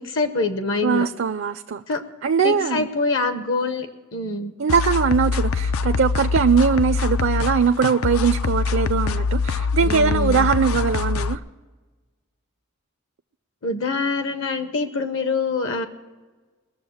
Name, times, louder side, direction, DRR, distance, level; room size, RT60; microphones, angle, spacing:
voice 1, 0.0-1.1 1.9-2.0 2.4-4.5 9.8-10.5 13.6-15.9, left 3 dB, 60° left, 9 dB, 0.9 m, -25 dB
voice 2, 0.8-1.8 2.2-2.9 4.6-11.4, right 6 dB, 60° right, 8 dB, 0.5 m, -21 dB
sound 1, 4.7-11.4, left 5 dB, 80° left, 0.5 m, -24 dB
21.0 x 7.1 x 6.3 m, 1.3 s
head